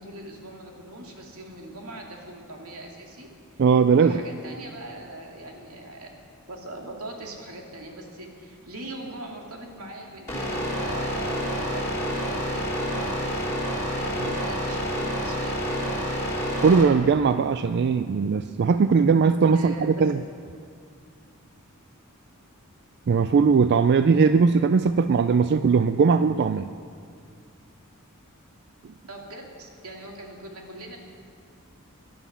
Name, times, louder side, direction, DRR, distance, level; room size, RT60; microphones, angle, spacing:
voice 1, 0.0-3.6 3.9-6.1 6.5-13.4 14.0-15.8 16.1-16.2 19.5-20.1 29.1-31.0, right 1 dB, 80° right, 1 dB, 2.3 m, -41 dB
voice 2, 3.6-4.2 16.6-20.2 23.1-26.7, right 5 dB, 50° right, 11 dB, 0.3 m, -19 dB
sound 1, 10.3-16.8, equal, 15° left, 3.5 m, -28 dB
18.0 x 11.5 x 5.7 m, 2.3 s
head